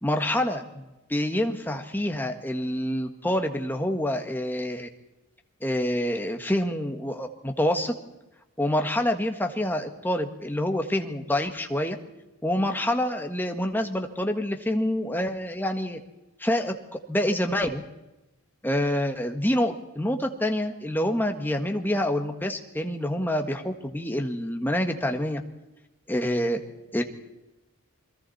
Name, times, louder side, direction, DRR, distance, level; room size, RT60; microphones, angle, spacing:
voice 1, 0.0-4.9 5.6-8.0 8.6-12.0 12.4-16.0 16.4-16.8 17.1-17.8 18.6-25.4 26.1-26.6 26.9-27.0, left 1 dB, 10° left, 5 dB, 1.6 m, -27 dB
29.0 x 22.0 x 4.3 m, 1.0 s
head